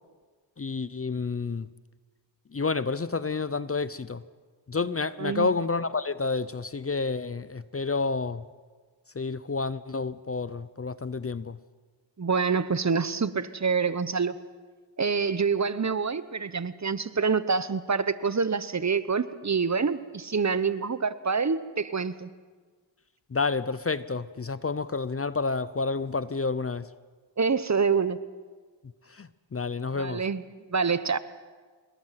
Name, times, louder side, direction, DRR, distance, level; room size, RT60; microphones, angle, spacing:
voice 1, 0.6-1.7 2.5-4.2 4.7-8.4 9.1-11.6 23.3-26.9 29.1-30.2, left 4 dB, 30° left, 16 dB, 0.7 m, -29 dB
voice 2, 5.2-5.5 12.2-14.3 15.0-22.3 27.4-28.2 30.0-30.4 30.7-31.2, right 5 dB, 35° right, 15 dB, 0.9 m, -26 dB
27.0 x 21.5 x 5.9 m, 1.5 s
cardioid pair, 60°, 46 cm